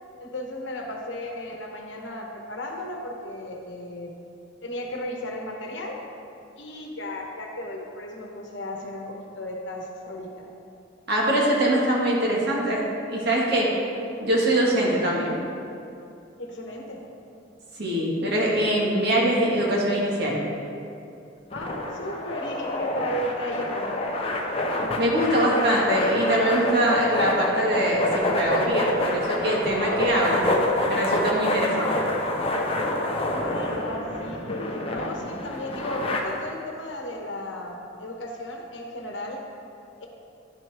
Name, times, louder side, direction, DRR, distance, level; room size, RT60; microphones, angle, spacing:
voice 1, 0.2-4.2 4.6-6.0 6.6-10.5 16.4-17.0 21.5-24.0 33.3-39.4 40.0-40.1, left 1 dB, 65° left, 1 dB, 1.1 m, -35 dB
voice 2, 11.1-12.8 13.1-13.7 14.2-15.4 17.8-20.4 25.0-30.4 30.9-32.0, right 1 dB, 60° right, -3 dB, 1.6 m, -23 dB
sound 1, 21.5-36.2, left 1 dB, 30° left, 0.7 m, -27 dB
11.0 x 6.1 x 3.5 m, 2.6 s
head